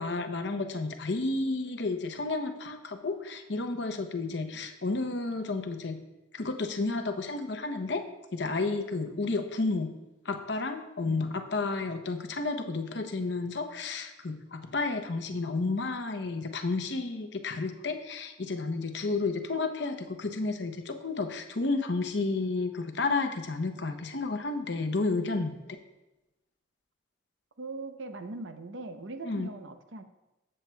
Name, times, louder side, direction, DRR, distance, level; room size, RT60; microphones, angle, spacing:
voice 1, 0.0-6.0 6.3-9.9 10.2-25.6 29.2-29.5, left 3 dB, 60° left, 7 dB, 0.8 m, -31 dB
voice 2, 4.3-4.7 9.1-9.4 11.0-11.4 24.9-25.6 27.6-30.0, right 3 dB, 75° right, 8 dB, 0.7 m, -42 dB
14.5 x 7.5 x 2.3 m, 1.0 s
head